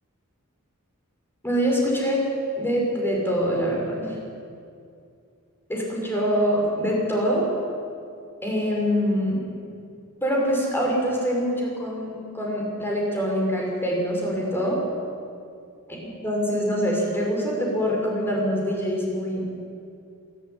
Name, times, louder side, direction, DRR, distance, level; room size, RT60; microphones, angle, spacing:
voice 1, 1.4-2.2 2.6-4.1 5.7-7.5 8.4-9.4 10.2-14.8 15.9-16.0 16.2-19.4, equal, 10° left, -2 dB, 6.1 m, -24 dB
27.0 x 12.5 x 9.7 m, 2.4 s
head